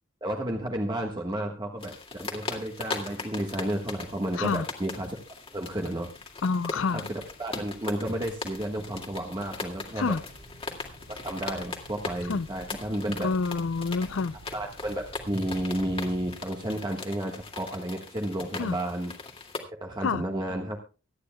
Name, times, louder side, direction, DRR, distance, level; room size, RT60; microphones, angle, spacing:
voice 1, 0.2-5.2 5.5-6.1 6.9-10.2 11.2-13.3 14.5-19.1 19.7-20.8, right 1 dB, 20° right, 1.4 m, -32 dB
sound 1, 1.1-1.5 1.8-2.1 2.6-16.8, right 1 dB, 55° right, 3.6 m, -52 dB
sound 2, 1.8-19.6, left 3 dB, 30° left, 2.1 m, -40 dB
voice 2, 6.4-7.1 10.0-10.2 12.3-12.5 13.2-14.4 18.6-18.8 20.0-20.2, left 4 dB, 70° left, 0.5 m, -27 dB
24.5 x 9.8 x 2.3 m
head